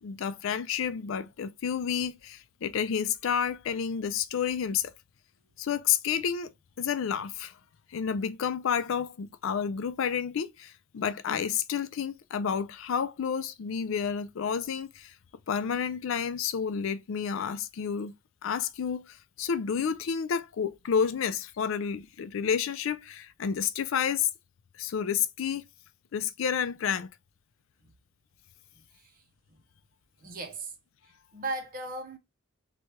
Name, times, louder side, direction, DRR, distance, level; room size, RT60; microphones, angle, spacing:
voice 1, 0.0-4.9 5.6-6.5 6.8-7.5 7.9-15.1 15.5-18.1 18.4-24.3 24.8-25.6 26.1-27.1, left 7 dB, 65° left, 0.4 m, -30 dB
voice 2, 28.9-29.2 29.5-29.6 30.2-30.7 31.3-32.2, right 2 dB, 40° right, 0.6 m, -37 dB
3.1 x 2.2 x 2.8 m
head